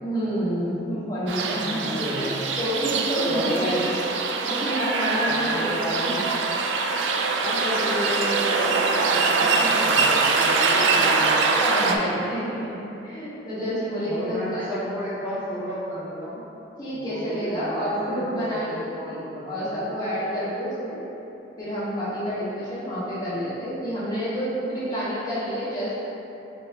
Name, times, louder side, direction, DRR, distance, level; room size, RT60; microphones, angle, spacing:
voice 1, 0.0-2.3 2.6-3.9 4.4-6.2 6.4-6.5 9.6-9.8 10.8-11.2 11.6-14.6 16.8-18.8 19.1-21.0 21.6-25.9, equal, 20° left, -11 dB, 1.3 m, -29 dB
sound 1, 1.3-12.0, right 4 dB, 90° right, 0.3 m, -23 dB
voice 2, 1.6-2.4 3.3-3.9 5.3-6.3 7.4-11.5 14.1-16.4 16.9-19.9, equal, 10° right, -13 dB, 1.4 m, -33 dB
4.2 x 3.1 x 3.4 m, 3.0 s
head